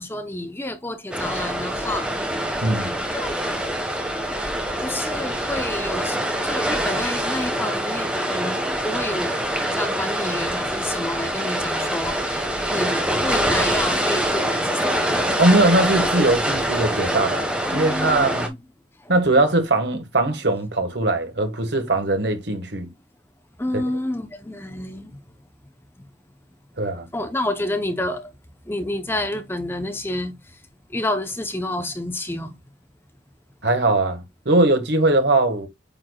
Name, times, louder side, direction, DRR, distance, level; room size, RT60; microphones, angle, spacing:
voice 1, 0.0-2.1 3.1-3.4 4.8-9.4 9.6-15.1 17.6-18.6 19.0-19.1 23.6-25.2 27.1-28.3 28.7-30.3 30.9-32.5, left 1 dB, 10° left, 0.7 m, -29 dB
sound 1, 1.1-18.5, right 1 dB, 5° right, 1.3 m, -24 dB
voice 2, 2.6-3.0 15.4-17.4 17.7-18.5 19.1-22.9 26.8-27.1 33.6-35.7, right 2 dB, 65° right, 1.6 m, -20 dB
8.8 x 4.6 x 2.3 m
head